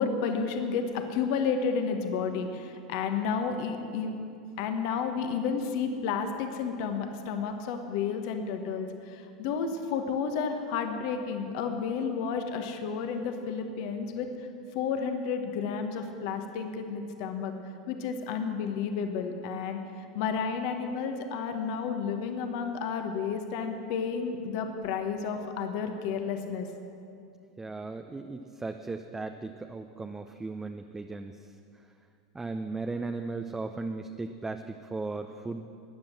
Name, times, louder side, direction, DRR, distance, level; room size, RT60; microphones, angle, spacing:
voice 1, 0.0-4.1 4.6-14.3 14.7-17.5 17.9-19.8 20.1-26.7, left 6 dB, 60° left, 6 dB, 1.4 m, -31 dB
voice 2, 27.6-31.3 32.3-35.6, right 3 dB, 10° right, 5 dB, 0.7 m, -36 dB
14.5 x 9.9 x 7.6 m, 2.5 s
hypercardioid pair, 95°, 3 cm